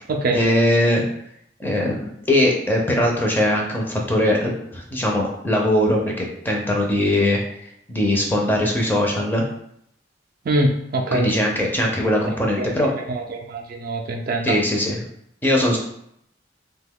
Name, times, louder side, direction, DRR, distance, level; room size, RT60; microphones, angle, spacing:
voice 1, 0.3-1.0 1.6-9.5 11.1-12.9 14.4-15.0 15.4-15.8, left 1 dB, 10° left, -1 dB, 0.5 m, -21 dB
voice 2, 10.5-11.3 12.6-12.7 13.1-14.6, right 2 dB, 50° right, 2 dB, 0.4 m, -23 dB
2.7 x 2.2 x 3.4 m, 0.73 s
head